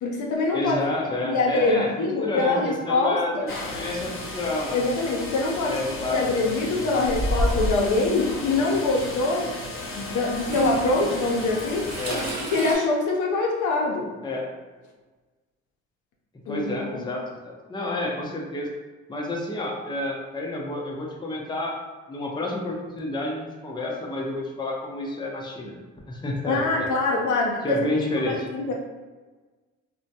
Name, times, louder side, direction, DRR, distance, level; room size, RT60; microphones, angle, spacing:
voice 1, 0.0-0.8 1.2-3.5 4.7-9.5 9.9-11.9 12.5-14.1 16.5-16.7 16.9-17.1 26.5-28.7, left 3 dB, 65° left, -1 dB, 0.6 m, -24 dB
voice 2, 0.5-4.8 5.6-6.2 6.9-7.1 12.0-12.3 14.2-14.5 16.5-18.7 19.1-21.8 22.1-25.8 26.1-26.9 27.3-28.5, left 2 dB, 15° left, -1 dB, 0.5 m, -30 dB
sound 1, 3.5-12.3, left 2 dB, 40° left, 0.8 m, -35 dB
Toilet flush / Trickle dribble, 7.0-7.9 9.0-9.1 10.4-12.8, right 1 dB, 50° right, 0.8 m, -28 dB
2.2 x 2.1 x 2.7 m, 1.3 s
supercardioid pair, 65°, 33 cm